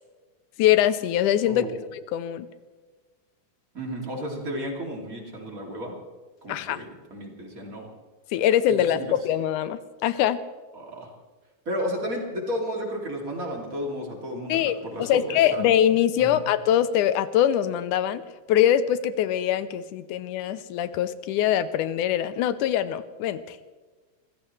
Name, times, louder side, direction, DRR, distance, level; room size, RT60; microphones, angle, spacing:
voice 1, 0.6-1.7 1.9-2.5 6.5-6.8 8.3-10.4 14.5-18.2 18.5-23.6, left 11 dB, 85° left, 13 dB, 2.1 m, -23 dB
voice 2, 1.4-1.8 3.7-6.0 6.4-7.9 8.7-9.1 10.7-11.1 11.7-15.6 16.2-16.4, equal, 25° right, 0 dB, 2.8 m, -33 dB
25.0 x 15.5 x 3.2 m, 1.3 s
omnidirectional pair, 3.7 m